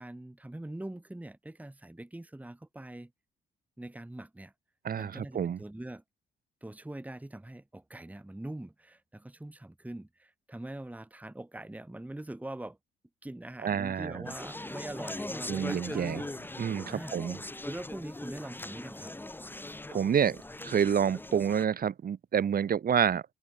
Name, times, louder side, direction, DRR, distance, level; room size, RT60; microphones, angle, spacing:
voice 1, 0.0-3.1 3.8-4.5 4.9-6.0 6.6-12.8 13.2-16.2 16.9-17.2 17.6-19.2, right 1 dB, 5° right, 1.6 m, -43 dB
voice 2, 4.8-5.6 13.6-14.2 15.5-16.2 16.6-17.4 19.9-20.4 20.6-23.2, right 8 dB, 50° right, 1.4 m, -28 dB
Conversation, 14.3-21.7, left 2 dB, 10° left, 1.2 m, -41 dB
cardioid pair, 90°, 20 cm